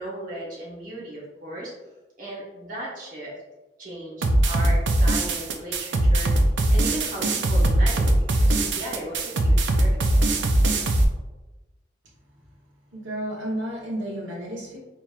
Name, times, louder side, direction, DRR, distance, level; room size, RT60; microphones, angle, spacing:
voice 1, 0.0-1.7 2.2-3.3 3.8-6.3 6.7-10.3, right 1 dB, 45° right, -5 dB, 1.1 m, -36 dB
sound 1, 4.2-11.0, right 1 dB, 70° right, 0.5 m, -20 dB
voice 2, 12.9-14.8, right 1 dB, 85° right, -5 dB, 1.1 m, -31 dB
4.5 x 3.0 x 2.4 m, 1.1 s
head